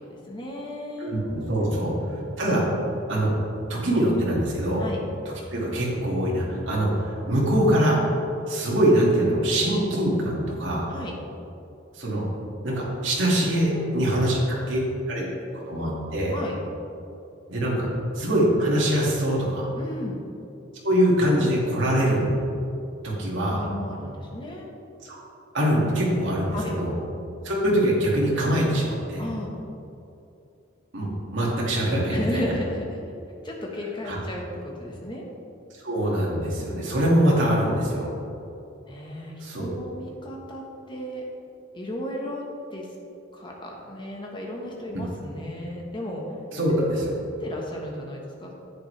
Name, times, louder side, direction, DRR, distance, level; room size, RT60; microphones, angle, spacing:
voice 1, 0.1-1.1 1.6-2.4 4.8-5.0 10.9-11.1 13.7-14.1 16.3-16.6 19.7-20.2 23.5-24.7 26.5-26.8 29.2-29.6 32.1-33.0 33.4-35.2 38.9-41.2 41.7-42.4 42.7-42.9 43.3-46.2 46.7-46.9 47.4-48.5, left 1 dB, 25° left, -1 dB, 1.3 m, -34 dB
voice 2, 1.0-1.9 2.4-2.6 3.1-3.3 3.7-4.8 5.5-8.0 8.5-10.9 11.9-12.2 12.6-14.8 15.1-15.3 15.7-16.3 17.5-17.9 18.1-19.7 20.8-22.4 23.0-23.6 25.0-25.2 25.5-26.9 27.4-29.2 30.9-32.4 34.0-34.2 35.8-38.1 39.4-39.8 46.5-47.0, right 1 dB, 75° right, -5 dB, 2.3 m, -23 dB
10.5 x 8.4 x 3.3 m, 2.7 s
head